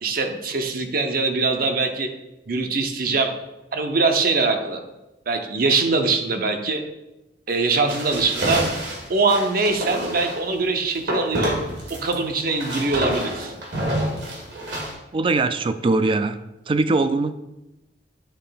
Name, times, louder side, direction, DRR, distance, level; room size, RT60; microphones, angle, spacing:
voice 1, 0.0-2.1 2.5-3.3 3.7-4.8 5.3-6.8 7.5-8.6 9.1-11.6 12.0-13.5, right 3 dB, 55° right, 5 dB, 0.7 m, -22 dB
sound 1, 7.9-10.4 11.1-12.1 12.4-14.9, right 1 dB, 85° right, 1.9 m, -27 dB
voice 2, 15.1-16.4 16.7-17.3, right 3 dB, 30° right, 12 dB, 0.3 m, -21 dB
8.9 x 3.7 x 4.0 m, 0.97 s
head